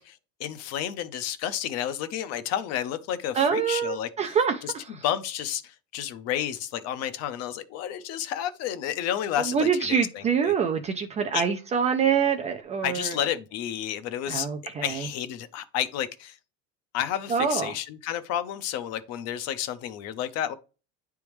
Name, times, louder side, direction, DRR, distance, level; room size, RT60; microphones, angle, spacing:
voice 1, 0.0-4.3 4.6-4.7 5.0-10.5 11.3-11.4 12.8-14.5 14.8-16.4 16.9-20.5, left 10 dB, 45° left, 0.6 m, -31 dB
voice 2, 3.3-5.0 9.5-13.2 14.3-15.1 17.3-17.7, right 7 dB, 20° right, 0.3 m, -25 dB
9.5 x 3.5 x 3.0 m
cardioid pair, 165°, 35 cm